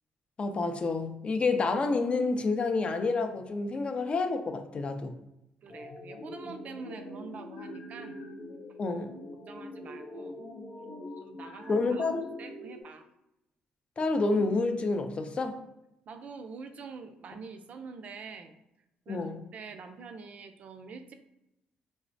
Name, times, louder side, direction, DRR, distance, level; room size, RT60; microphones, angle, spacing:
voice 1, 0.4-5.1 8.8-9.1 11.7-12.3 14.0-15.6 19.1-19.4, left 3 dB, 40° left, 6 dB, 0.4 m, -29 dB
voice 2, 5.6-8.2 9.5-10.4 11.2-13.1 16.1-18.5 19.1-21.1, right 4 dB, 55° right, 7 dB, 0.3 m, -45 dB
sound 1, 5.7-12.8, left 1 dB, 85° left, 0.6 m, -44 dB
3.3 x 2.0 x 2.5 m, 0.88 s
supercardioid pair, 75°, 3 cm